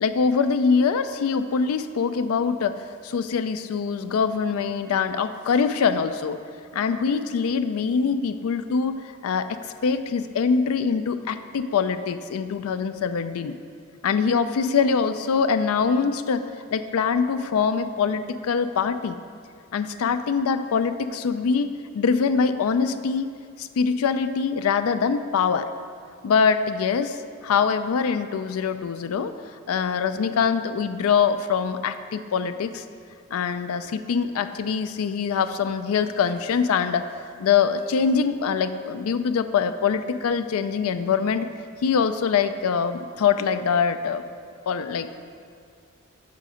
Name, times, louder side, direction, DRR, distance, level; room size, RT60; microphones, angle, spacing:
voice 1, 0.0-6.4 6.7-13.6 14.0-16.4 16.7-19.2 19.7-25.7 26.2-27.2 27.4-29.3 29.7-32.8 33.3-37.1 37.4-41.5 41.8-44.2 44.7-45.1, left 6 dB, 75° left, 11 dB, 0.3 m, -23 dB
6.6 x 5.1 x 4.9 m, 2.2 s
head